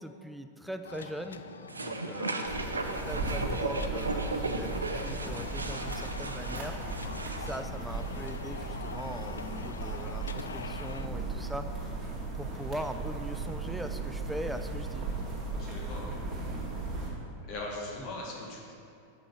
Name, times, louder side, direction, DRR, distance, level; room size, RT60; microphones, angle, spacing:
voice 1, 0.0-1.4 1.7-2.8 3.1-6.8 7.3-11.7 12.4-15.1 18.0-18.1, right 1 dB, 5° right, 8 dB, 0.4 m, -41 dB
sound 1, 0.8-11.1, left 5 dB, 70° left, 0.3 m, -44 dB
sound 2, 1.7-7.6, right 3 dB, 75° right, 0.5 m, -36 dB
sound 3, 2.4-17.1, right 3 dB, 25° right, 2.1 m, -37 dB
voice 2, 15.6-16.2 17.5-18.7, left 2 dB, 40° left, -3 dB, 1.9 m, -39 dB
6.6 x 5.9 x 6.3 m, 2.5 s
figure-of-eight pair, 90°, 0 cm